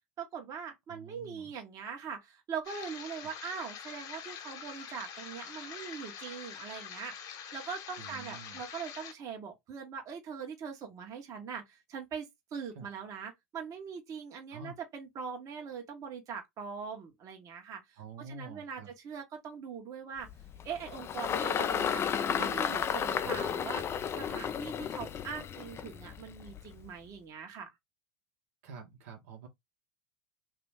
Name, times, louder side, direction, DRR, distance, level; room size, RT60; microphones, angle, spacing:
voice 1, 0.2-12.3 12.5-20.3 20.6-23.8 24.1-27.7, right 6 dB, 40° right, 1.3 m, -42 dB
voice 2, 0.9-1.5 8.0-8.6 12.7-12.9 14.5-14.7 18.0-18.9 23.2-23.4 28.6-29.5, right 4 dB, 70° right, 1.4 m, -48 dB
sound 1, 2.6-9.1, left 8 dB, 50° left, 1.1 m, -45 dB
Engine, 20.3-26.9, left 8 dB, 30° left, 0.5 m, -33 dB
3.0 x 2.9 x 3.5 m
hypercardioid pair, 95°, 8 cm